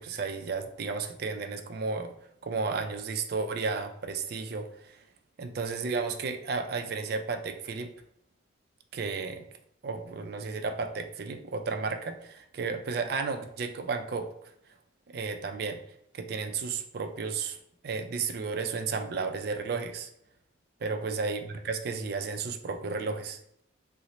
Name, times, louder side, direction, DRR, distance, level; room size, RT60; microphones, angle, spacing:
voice 1, 0.0-2.1 2.4-5.0 5.4-7.9 8.9-9.4 9.8-14.5 15.1-15.8 16.1-17.6 17.8-20.1 20.8-23.4, right 4 dB, 55° right, 7 dB, 0.3 m, -33 dB
3.0 x 2.0 x 3.9 m, 0.73 s
head